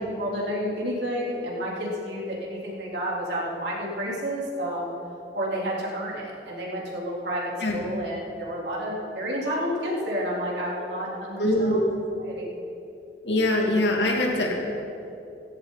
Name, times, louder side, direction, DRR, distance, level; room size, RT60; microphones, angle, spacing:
voice 1, 0.2-4.9 5.3-11.9 12.2-12.5, equal, 75° right, -4 dB, 3.7 m, -30 dB
voice 2, 11.4-11.9 13.2-14.5, left 1 dB, 85° left, -1 dB, 2.7 m, -23 dB
16.0 x 16.0 x 4.1 m, 2.8 s
head